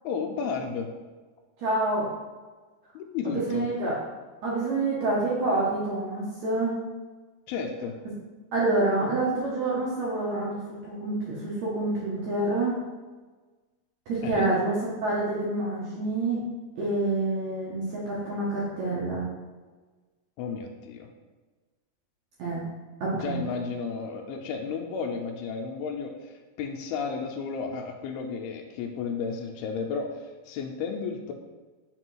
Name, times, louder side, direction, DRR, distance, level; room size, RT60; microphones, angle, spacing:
voice 1, 0.0-0.9 2.9-3.7 7.5-8.0 14.2-14.5 20.4-21.1 23.1-31.3, left 5 dB, 85° left, 3 dB, 2.4 m, -33 dB
voice 2, 1.6-2.1 3.2-3.9 4.4-6.8 8.5-12.8 14.1-16.4 16.8-19.3 22.4-22.6 23.0-23.4, right 2 dB, 80° right, -6 dB, 1.6 m, -27 dB
5.4 x 4.0 x 4.5 m, 1.3 s
omnidirectional pair, 4.6 m